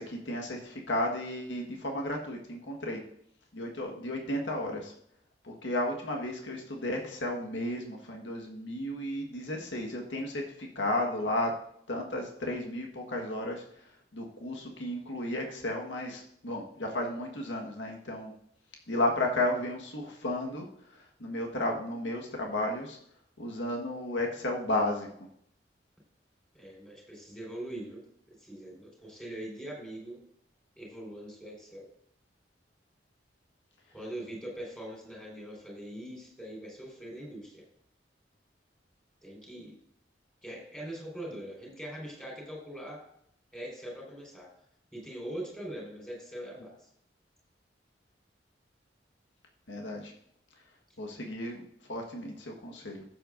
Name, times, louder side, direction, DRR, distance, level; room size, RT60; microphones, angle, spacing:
voice 1, 0.0-3.0 3.5-4.9 5.4-11.5 11.9-13.6 14.1-18.3 18.9-20.7 20.9-23.0 23.4-25.1 49.7-50.1 51.0-53.0, left 1 dB, 90° left, 1 dB, 1.5 m, -33 dB
voice 2, 26.5-28.0 28.4-30.2 30.7-31.9 33.9-37.6 39.2-39.8 40.4-43.0 43.5-44.5 44.9-46.8, right 1 dB, 5° left, -3 dB, 4.4 m, -42 dB
14.5 x 7.7 x 2.6 m, 0.69 s
head